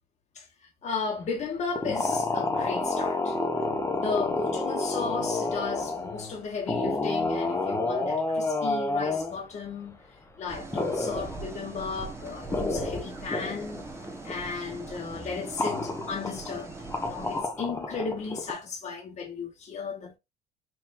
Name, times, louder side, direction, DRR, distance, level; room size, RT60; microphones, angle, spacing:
voice 1, 0.8-3.4 3.9-10.0 10.4-13.8 14.2-16.7 17.0-20.2, left 5 dB, 45° left, 1.4 m, -35 dB
sound 1, 1.7-6.4 6.7-9.4 10.7-11.5 12.0-12.1 12.3-13.8 14.1-14.4 14.7-14.8 15.6-16.5 16.9-18.5, left 2 dB, 15° left, 0.9 m, -29 dB
sound 2, 10.5-17.4, right 3 dB, 15° right, 1.2 m, -41 dB
5.5 x 2.9 x 2.6 m
cardioid pair, 110°, 17 cm